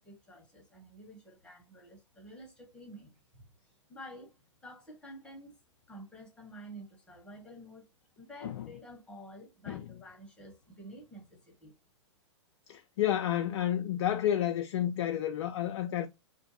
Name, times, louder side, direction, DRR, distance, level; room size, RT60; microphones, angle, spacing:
voice 1, 0.0-4.4 4.6-5.5 5.9-7.8 8.2-11.7, equal, 5° left, 1.0 m, -50 dB
voice 2, 12.7-16.1, left 11 dB, 65° left, 0.4 m, -30 dB
2.6 x 2.1 x 2.6 m
hypercardioid pair, 120°, 16 cm